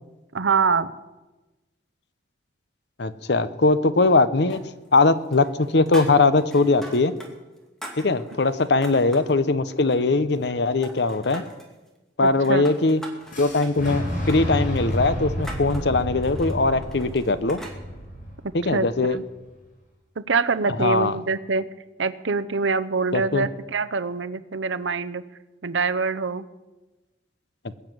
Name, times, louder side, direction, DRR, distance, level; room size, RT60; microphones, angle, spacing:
voice 1, 0.3-0.9 12.2-12.6 18.4-19.2 20.2-21.7 22.0-25.2 25.6-26.5, right 4 dB, 85° right, 13 dB, 0.8 m, -25 dB
voice 2, 3.0-4.6 4.9-7.1 8.0-11.4 12.2-13.0 13.4-17.6 18.5-19.2 20.8-21.2 23.1-23.5, left 3 dB, 65° left, 13 dB, 0.8 m, -20 dB
sound 1, 4.5-5.1 5.3-7.3 7.6-9.3 9.8-10.6 10.8-11.7 12.3-17.8, right 1 dB, ahead, 2.4 m, -42 dB
Boom, 13.3-19.2, equal, 45° left, 5.7 m, -30 dB
21.0 x 7.2 x 9.3 m, 1.1 s
head